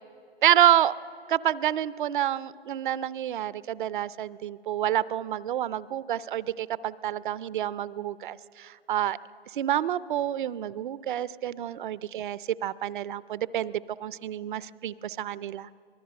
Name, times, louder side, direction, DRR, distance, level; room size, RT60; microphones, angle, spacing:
voice 1, 0.4-0.9 1.3-9.2 9.6-15.7, right 11 dB, 50° right, 17 dB, 0.6 m, -28 dB
24.0 x 19.5 x 6.5 m, 2.6 s
figure-of-eight pair, 125°, 32 cm